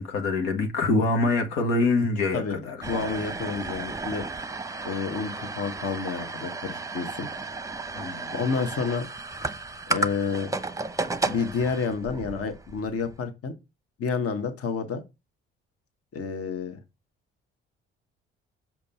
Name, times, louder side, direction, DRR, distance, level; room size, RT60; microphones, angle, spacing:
voice 1, 0.0-2.9 7.9-8.4, left 3 dB, 80° left, 1.4 m, -25 dB
voice 2, 2.3-4.2 4.8-7.3 8.3-9.0 9.9-10.5 11.2-13.5 14.0-15.0 16.1-16.8, left 5 dB, 55° left, 1.4 m, -29 dB
sound 1, 2.8-13.2, right 3 dB, 10° right, 0.8 m, -33 dB
6.0 x 5.1 x 4.3 m
hypercardioid pair, 50°, 29 cm